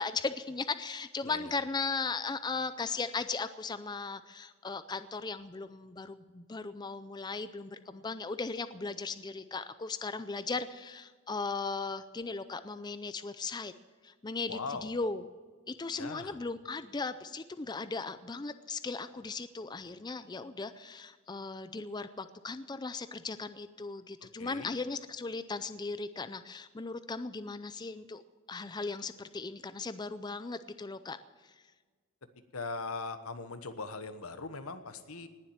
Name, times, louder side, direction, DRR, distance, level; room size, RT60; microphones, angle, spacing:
voice 1, 0.0-13.7 14.0-15.2 15.7-28.2 28.5-31.2 31.4-31.5, left 4 dB, 20° left, 12 dB, 0.4 m, -37 dB
voice 2, 1.2-1.5 14.5-14.9 16.0-16.4 24.4-24.7 32.5-35.3, left 3 dB, 85° left, 10 dB, 1.2 m, -40 dB
19.0 x 7.5 x 8.8 m, 1.5 s
head